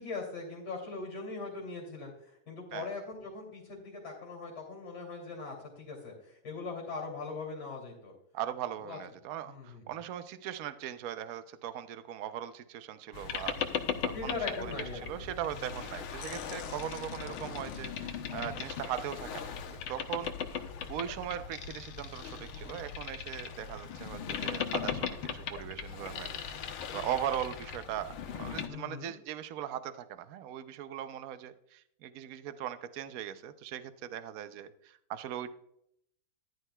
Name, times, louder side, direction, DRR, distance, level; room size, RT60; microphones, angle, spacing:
voice 1, 0.0-2.1 2.5-8.1 8.8-9.0 9.5-9.8 14.1-15.2 15.5-15.7 28.7-29.1, left 4 dB, 50° left, -3 dB, 3.3 m, -40 dB
voice 2, 8.3-19.5 19.9-35.5, right 10 dB, 85° right, 11 dB, 0.7 m, -39 dB
Boat Water vehicle, 13.1-28.7, left 7 dB, 80° left, 1.7 m, -38 dB
14.0 x 11.0 x 2.3 m, 0.72 s
omnidirectional pair, 2.3 m